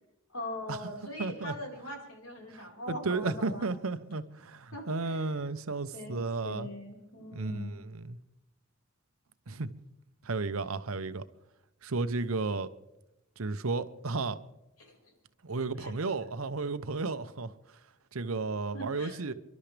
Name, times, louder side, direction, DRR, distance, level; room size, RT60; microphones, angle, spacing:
voice 1, 0.3-3.6 4.7-5.3 5.9-7.8 14.8-15.1 15.8-15.9 18.7-19.2, left 1 dB, 85° left, 4.6 m, -41 dB
voice 2, 1.2-1.5 2.5-6.7 7.3-8.2 9.5-9.7 10.2-11.2 11.8-12.7 13.4-14.4 15.4-17.5 18.1-19.3, right 3 dB, 80° right, 0.9 m, -33 dB
29.0 x 12.0 x 3.4 m
head